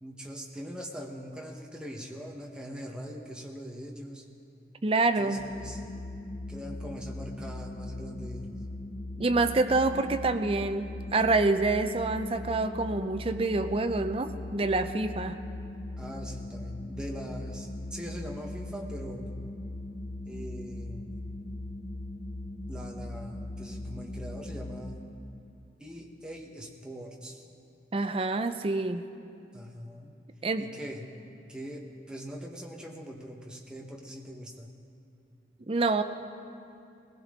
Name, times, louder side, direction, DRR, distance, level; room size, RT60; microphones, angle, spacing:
voice 1, 0.0-4.3 5.1-5.8 6.5-8.6 16.0-19.3 20.2-21.1 22.7-25.0 25.8-27.5 29.5-30.1 30.6-31.1 31.5-34.7, equal, 5° right, 0 dB, 1.0 m, -42 dB
voice 2, 4.8-5.4 9.2-15.4 27.9-29.1 30.4-30.7 35.7-36.0, right 3 dB, 30° right, 8 dB, 0.5 m, -27 dB
sound 1, 5.4-24.9, left 1 dB, 35° left, 0.8 m, -39 dB
20.5 x 16.0 x 3.7 m, 2.6 s
head